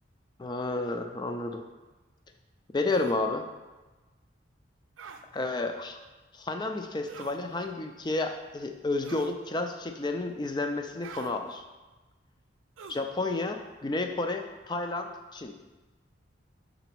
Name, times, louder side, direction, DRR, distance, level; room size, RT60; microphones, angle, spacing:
voice 1, 0.4-1.6 2.7-3.4 5.3-6.0 6.3-11.6 12.9-15.5, left 2 dB, 20° left, 6 dB, 0.4 m, -31 dB
sound 1, 2.9-3.2 5.0-5.2 7.1-7.4 9.0-9.4 11.0-11.3 12.8-13.1, right 5 dB, 90° right, 0.5 m, -45 dB
5.9 x 3.9 x 4.5 m, 1.2 s
head